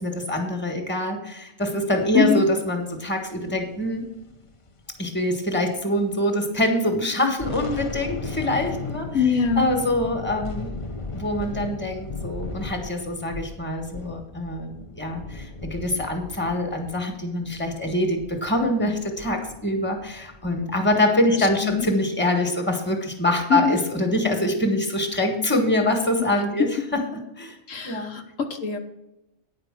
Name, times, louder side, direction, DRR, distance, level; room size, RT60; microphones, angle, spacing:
voice 1, 0.0-4.1 5.0-9.2 9.6-10.8 11.1-27.0 27.4-27.6 27.8-28.1, left 1 dB, 10° left, 4 dB, 1.4 m, -24 dB
sound 1, 3.4-6.2 6.5-6.6 7.1-21.9, left 3 dB, 35° left, 0.6 m, -37 dB
voice 2, 9.1-9.7 21.6-21.9 23.5-23.8 27.7-28.8, left 5 dB, 75° left, 4 dB, 1.4 m, -23 dB
9.7 x 5.1 x 7.5 m, 0.89 s
omnidirectional pair, 1.4 m